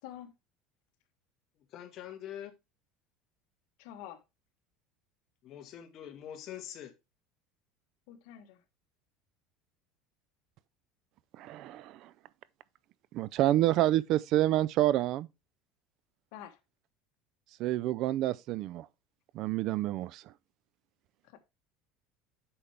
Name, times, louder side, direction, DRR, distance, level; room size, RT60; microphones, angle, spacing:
voice 1, 0.0-0.3 3.8-4.2 8.1-8.6 16.3-16.6 21.2-21.5, left 11 dB, 70° left, 1.4 m, -47 dB
voice 2, 1.7-2.5 5.4-6.9, left 10 dB, 45° left, 1.6 m, -44 dB
voice 3, 11.4-12.1 13.1-15.3 17.6-18.9 19.3-20.2, right 14 dB, 55° right, 0.4 m, -28 dB
8.6 x 5.7 x 3.3 m
supercardioid pair, 135°, 0 cm